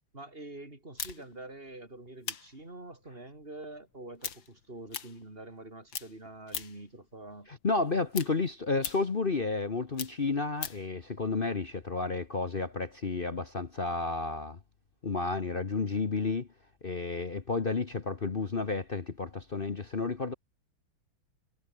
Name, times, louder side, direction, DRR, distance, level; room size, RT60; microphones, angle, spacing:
voice 1, 0.1-7.5, right 2 dB, 25° right, 5.6 m, -46 dB
sound 1, 1.0-5.6 5.9-6.9 7.3-10.9, left 7 dB, 60° left, 2.6 m, -41 dB
voice 2, 7.5-14.6 15.0-16.5 16.8-20.3, left 3 dB, 35° left, 0.9 m, -31 dB
omnidirectional pair, 2.4 m